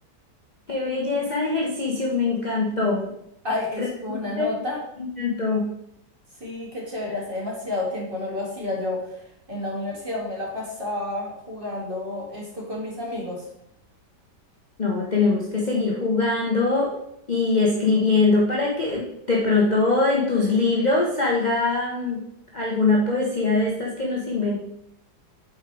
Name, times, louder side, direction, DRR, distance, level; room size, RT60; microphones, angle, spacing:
voice 1, 0.7-3.1 3.8-3.9 4.4-4.5 5.2-5.6 14.8-16.9 17.3-22.2 22.5-24.6, left 3 dB, 35° left, -4 dB, 0.8 m, -22 dB
voice 2, 3.4-4.8 6.4-9.2 9.5-13.4, left 2 dB, 30° right, -4 dB, 1.9 m, -30 dB
4.9 x 4.6 x 4.6 m, 0.75 s
omnidirectional pair, 1.9 m